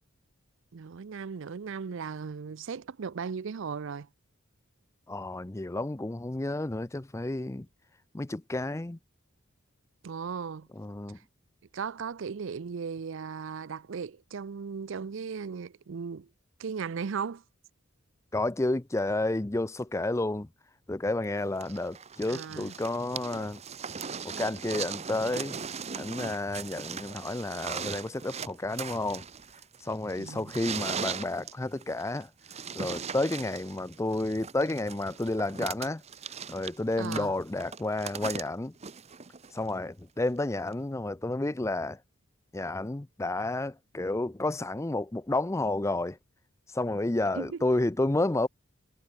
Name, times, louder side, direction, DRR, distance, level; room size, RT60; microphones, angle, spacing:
voice 1, 0.7-4.1 10.0-10.7 11.7-16.3 16.6-17.4 22.3-22.7 30.2-30.5 37.0-37.3 47.3-47.6, right 6 dB, 65° right, 0.5 m, -37 dB
voice 2, 5.1-7.7 8.1-9.0 10.8-11.2 18.3-20.5 20.9-23.6 24.2-25.6 26.0-29.2 29.8-32.3 32.7-36.0 36.5-38.7 39.5-42.0 42.5-46.2 46.7-48.5, left 2 dB, 15° left, 0.5 m, -31 dB
sound 1, 21.6-39.7 40.7-40.8, right 6 dB, 30° right, 0.9 m, -39 dB
head